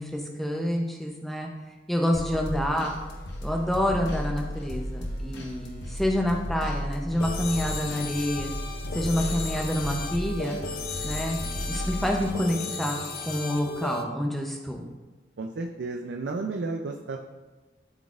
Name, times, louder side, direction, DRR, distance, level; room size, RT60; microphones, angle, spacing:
voice 1, 0.0-1.5 1.9-2.9 3.4-8.5 8.9-10.6 11.0-11.4 11.7-14.9, equal, ahead, 0 dB, 0.7 m, -28 dB
sound 1, 2.1-12.4, equal, 65° left, 1.0 m, -34 dB
sound 2, 7.2-14.0, left 4 dB, 50° left, 0.5 m, -35 dB
voice 2, 9.1-9.5 15.4-17.2, right 3 dB, 65° right, 2 dB, 0.4 m, -33 dB
12.0 x 4.0 x 2.5 m, 1.2 s
head